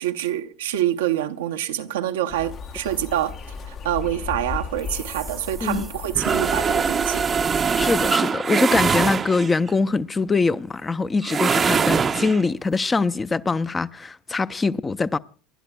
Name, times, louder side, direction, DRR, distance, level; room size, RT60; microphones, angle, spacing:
voice 1, 0.0-3.3 3.7-7.3, right 12 dB, 80° right, 0.7 m, -26 dB
sound 1, 2.3-8.1, left 5 dB, 45° left, 1.0 m, -35 dB
sound 2, 4.9-9.7 11.2-12.4, right 6 dB, 30° right, 0.6 m, -23 dB
voice 2, 7.8-15.2, left 4 dB, 20° left, 0.6 m, -23 dB
28.5 x 11.5 x 2.3 m
hypercardioid pair, 75°, 0 cm